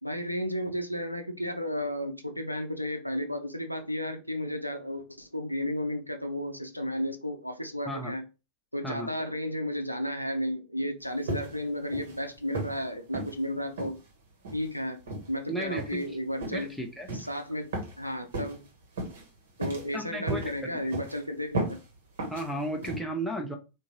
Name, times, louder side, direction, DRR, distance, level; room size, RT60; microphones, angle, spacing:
voice 1, 0.0-8.3 8.7-14.0 14.5-15.0 15.3-16.8 17.1-18.7 19.6-21.8, equal, 90° left, 0.4 m, -33 dB
sound 1, 11.3-11.7 11.9-12.2 12.5-12.8 13.1-13.3 13.8-14.0 14.4-14.7 15.1-15.3 15.8-16.1 16.4-16.6 17.1-17.3 17.7-18.0 18.3-18.6 19.0-19.2 19.6-20.0 20.3-20.5 20.9-21.2 21.5-21.8 22.2-22.5 22.8-23.0, right 2 dB, 60° right, 1.3 m, -34 dB
voice 2, 15.5-16.0 16.5-17.1 19.9-20.4 22.3-23.6, right 1 dB, 5° left, 0.7 m, -34 dB
3.6 x 2.6 x 3.0 m
figure-of-eight pair, 90°, 0 cm